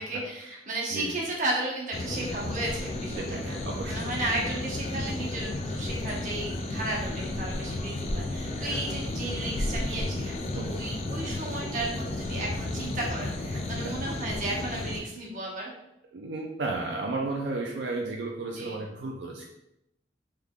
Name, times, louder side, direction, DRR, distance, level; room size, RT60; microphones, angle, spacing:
voice 1, 0.0-3.6 3.9-15.7 18.6-18.8, right 1 dB, 45° right, -3 dB, 1.0 m, -34 dB
sound 1, 1.9-15.0, left 2 dB, 35° left, 0.3 m, -33 dB
voice 2, 3.1-4.1 8.5-8.8 10.5-10.8 13.5-13.9 16.1-19.5, right 3 dB, 80° right, -1 dB, 0.4 m, -34 dB
3.6 x 3.3 x 2.3 m, 0.84 s
head